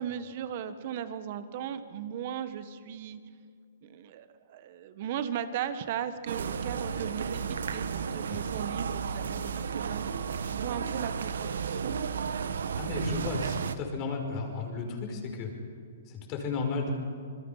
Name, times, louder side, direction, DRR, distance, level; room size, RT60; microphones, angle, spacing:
voice 1, 0.0-3.2 3.8-12.0, right 9 dB, 50° right, 11 dB, 1.5 m, -37 dB
sound 1, 6.3-13.8, right 6 dB, 80° right, 1.3 m, -33 dB
voice 2, 12.8-15.5 16.1-16.9, left 4 dB, 35° left, 3 dB, 5.2 m, -33 dB
27.5 x 21.5 x 5.8 m, 2.2 s
hypercardioid pair, 145°, 0 cm